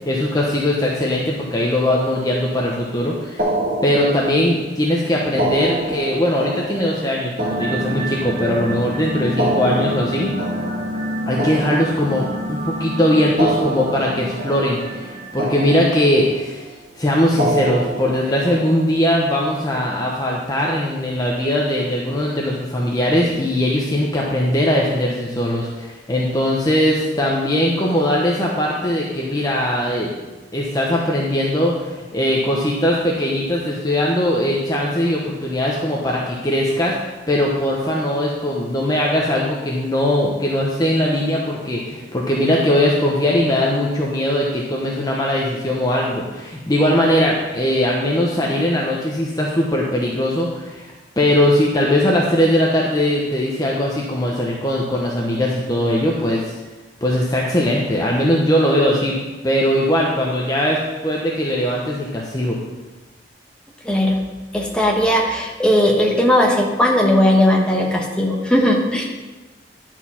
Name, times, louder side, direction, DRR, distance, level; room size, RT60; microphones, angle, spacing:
voice 1, 0.1-3.4 3.8-10.3 11.3-16.7 17.0-30.1 30.5-56.6 57.0-59.2 59.4-62.6, left 1 dB, 20° left, -3 dB, 0.9 m, -20 dB
sound 1, 3.4-4.6 5.3-8.6 9.2-12.5 13.2-15.1 15.4-16.4 17.3-19.1, right 1 dB, 55° right, 1.9 m, -27 dB
sound 2, 7.4-15.8, equal, 40° right, 2.9 m, -28 dB
voice 2, 63.8-64.2 64.5-69.0, left 1 dB, 5° left, -1 dB, 1.2 m, -17 dB
10.5 x 4.6 x 5.7 m, 1.2 s
head